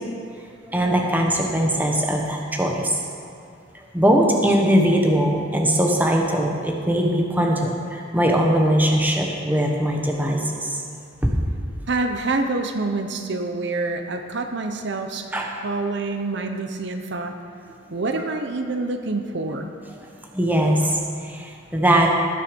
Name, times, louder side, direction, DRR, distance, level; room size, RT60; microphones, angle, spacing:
voice 1, 0.6-3.0 3.7-10.8 11.2-11.3 15.3-15.5 20.0-22.1, equal, 10° right, 0 dB, 1.2 m, -21 dB
voice 2, 11.9-15.3 15.6-17.3 17.9-19.7, right 3 dB, 60° right, 6 dB, 0.8 m, -26 dB
19.0 x 6.6 x 5.2 m, 2.3 s
head